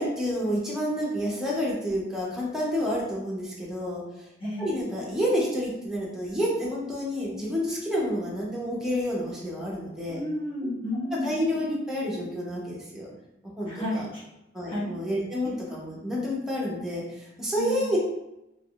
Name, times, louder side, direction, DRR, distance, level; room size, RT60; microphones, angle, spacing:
voice 1, 0.0-4.0 4.6-10.2 11.2-13.1 13.6-14.1 14.5-18.0, equal, 5° right, -6 dB, 0.9 m, -29 dB
voice 2, 10.1-11.3 13.7-14.2 14.7-14.9 17.6-17.9, left 1 dB, 30° left, -9 dB, 1.4 m, -31 dB
3.5 x 3.1 x 2.4 m, 0.89 s
head